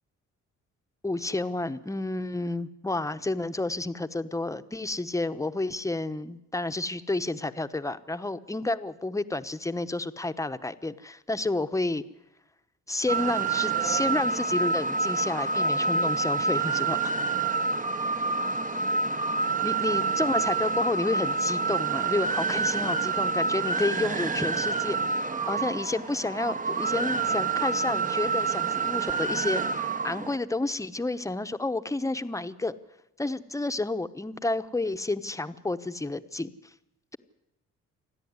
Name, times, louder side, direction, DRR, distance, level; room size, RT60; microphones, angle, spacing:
voice 1, 1.0-12.0 12.9-17.1 19.6-32.8 33.2-36.5, left 2 dB, 10° left, 11 dB, 1.0 m, -30 dB
sound 1, 13.1-30.4, right 4 dB, 25° right, 1.0 m, -27 dB
28.0 x 10.5 x 9.6 m, 0.89 s
cardioid pair, 90°, 30 cm